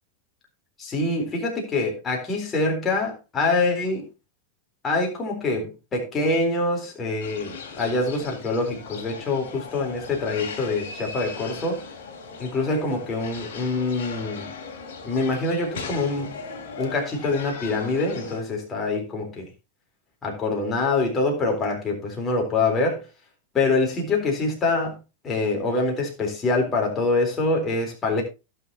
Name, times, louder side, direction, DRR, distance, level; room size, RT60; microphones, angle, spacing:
voice 1, 0.8-4.0 4.8-11.8 12.4-14.5 15.0-16.4 16.8-19.5 20.2-23.1 23.5-25.0 25.2-28.2, left 3 dB, 20° left, 3.9 m, -25 dB
sound 1, 7.2-18.4, left 4 dB, 55° left, 3.0 m, -38 dB
17.0 x 6.9 x 2.9 m
figure-of-eight pair, 90°, 0 cm